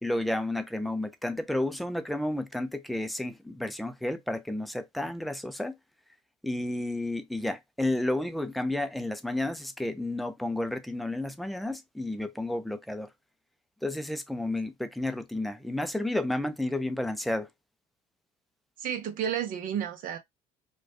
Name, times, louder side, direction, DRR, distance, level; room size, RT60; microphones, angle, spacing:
voice 1, 0.0-5.8 6.4-13.1 13.8-17.5, left 1 dB, ahead, 0.5 m, -31 dB
voice 2, 18.8-20.2, right 9 dB, 60° right, 0.7 m, -31 dB
2.4 x 2.3 x 2.3 m
hypercardioid pair, 70°, 16 cm